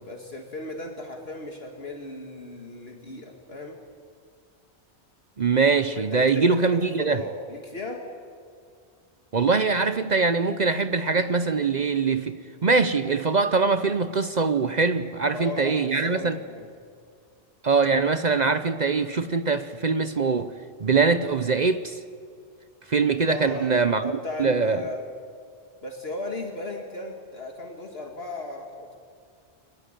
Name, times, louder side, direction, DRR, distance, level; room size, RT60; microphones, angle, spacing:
voice 1, 0.0-3.8 5.9-8.0 15.3-16.7 23.3-23.7 24.0-25.0 25.8-29.0, left 2 dB, 60° left, 2.3 m, -36 dB
voice 2, 5.4-7.2 9.3-16.4 17.6-20.5 20.8-22.0 22.9-24.0 24.4-24.8, right 4 dB, 45° right, 0.8 m, -23 dB
24.0 x 20.0 x 9.0 m
omnidirectional pair, 1.2 m